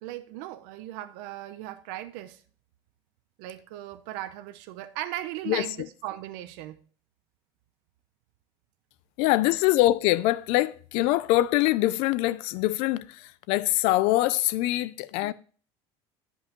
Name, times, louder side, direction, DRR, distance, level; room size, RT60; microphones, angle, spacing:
voice 1, 0.0-2.4 3.4-6.8, right 14 dB, 75° right, 0.7 m, -37 dB
voice 2, 9.2-15.3, left 16 dB, 60° left, 0.4 m, -24 dB
11.0 x 5.4 x 3.0 m
cardioid pair, 180°, 11 cm